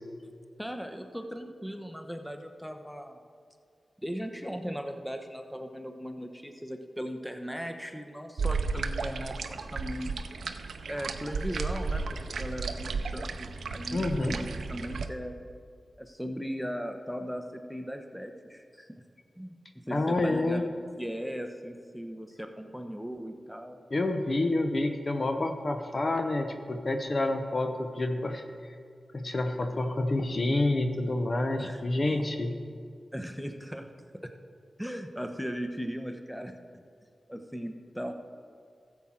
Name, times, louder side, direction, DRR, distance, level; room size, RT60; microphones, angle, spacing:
voice 1, 0.6-3.2 4.0-10.1 10.9-15.4 16.0-18.9 19.4-23.8 31.6-32.2 33.1-33.9 34.8-36.5 37.3-38.1, equal, ahead, 5 dB, 1.0 m, -38 dB
sound 1, 8.4-15.1, right 4 dB, 85° right, 0.5 m, -34 dB
voice 2, 13.9-14.4 19.9-20.6 23.9-28.4 29.1-32.6, left 2 dB, 55° left, 6 dB, 0.9 m, -28 dB
13.5 x 7.8 x 4.4 m, 2.2 s
cardioid pair, 40°, 0 cm